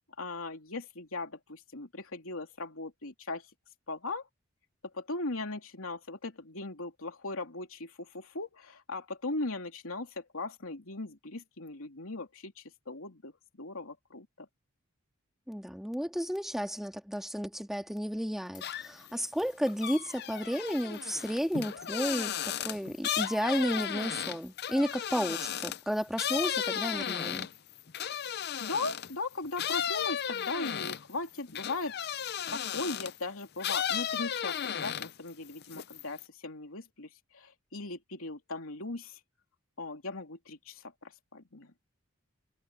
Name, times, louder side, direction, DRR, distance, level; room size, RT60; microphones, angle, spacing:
voice 1, 0.2-3.5 3.9-4.3 4.9-13.3 13.6-14.5 28.6-31.9 32.5-39.2 39.8-41.7, left 3 dB, 85° left, 3.0 m, -38 dB
voice 2, 15.5-22.3 22.6-27.5, equal, ahead, 1.9 m, -32 dB
sound 1, 18.5-19.1 19.4-29.1 29.6-33.2 33.6-35.3 35.6-36.2, left 9 dB, 50° left, 0.6 m, -34 dB
head